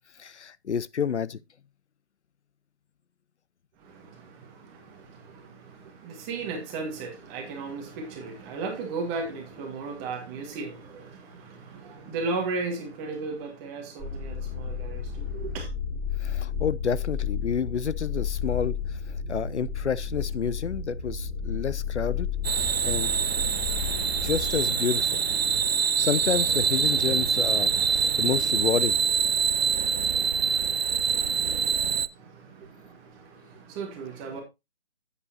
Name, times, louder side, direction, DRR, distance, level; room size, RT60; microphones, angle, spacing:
voice 1, 0.2-1.4 16.2-19.0 19.3-22.6 22.8-23.1 24.2-25.2 25.7-29.0, left 7 dB, 85° left, 0.6 m, -29 dB
voice 2, 3.8-15.7 32.1-34.4, right 4 dB, 15° right, 1.5 m, -36 dB
sound 1, 14.0-24.6, left 6 dB, 5° left, 3.3 m, -32 dB
sound 2, 22.4-32.1, right 6 dB, 60° right, 0.7 m, -25 dB
9.8 x 8.4 x 2.8 m
figure-of-eight pair, 155°, 34 cm